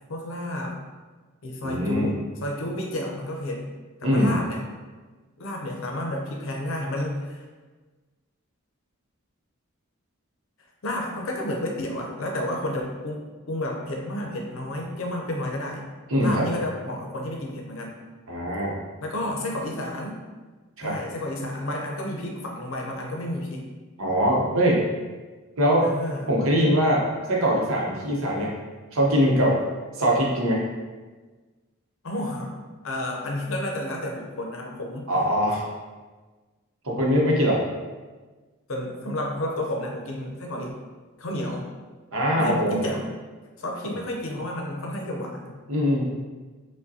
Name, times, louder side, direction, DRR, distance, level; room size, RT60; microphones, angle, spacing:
voice 1, 0.1-0.8 1.4-3.6 4.0-4.6 5.4-7.4 10.8-13.2 13.5-15.9 16.2-17.9 19.0-20.2 20.8-23.6 25.8-26.3 32.0-32.6 32.8-35.1 38.7-40.7 41.2-41.7 42.3-43.2 43.6-45.6, left 1 dB, 65° left, 0 dB, 0.6 m, -31 dB
voice 2, 1.6-2.1 4.0-4.4 16.1-16.5 18.3-18.8 20.8-20.9 24.0-24.8 25.6-25.9 26.3-28.5 28.9-29.6 30.0-30.6 35.1-35.7 36.8-37.6 42.1-42.7 43.8-43.9 45.7-46.1, equal, 70° right, -3 dB, 0.8 m, -22 dB
4.8 x 2.2 x 2.7 m, 1.3 s
head